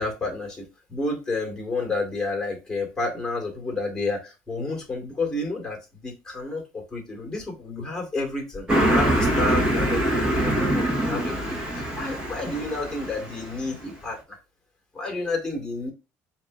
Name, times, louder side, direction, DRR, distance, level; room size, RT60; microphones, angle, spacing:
voice 1, 0.0-14.4 14.9-15.9, left 2 dB, 10° left, 1 dB, 2.1 m, -30 dB
Car passing by, 8.7-13.6, right 1 dB, 15° right, 1.9 m, -24 dB
7.1 x 3.0 x 2.5 m, 0.28 s
cardioid pair, 155°, 5 cm